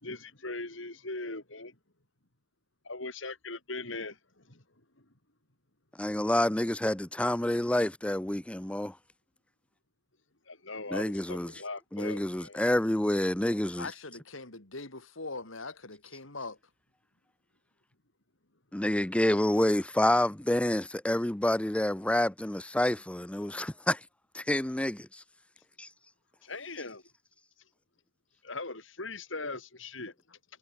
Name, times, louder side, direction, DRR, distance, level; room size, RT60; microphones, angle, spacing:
voice 1, 0.0-1.7 2.9-4.2 4.5-4.6 10.5-12.6 26.4-27.0 28.4-30.1, left 3 dB, 70° left, 5.0 m, -39 dB
voice 2, 6.0-8.9 10.9-11.5 11.9-13.9 18.7-24.0 24.3-25.2 25.8-25.9, left 1 dB, 5° left, 0.5 m, -28 dB
voice 3, 13.8-16.6, left 3 dB, 85° left, 4.1 m, -41 dB
head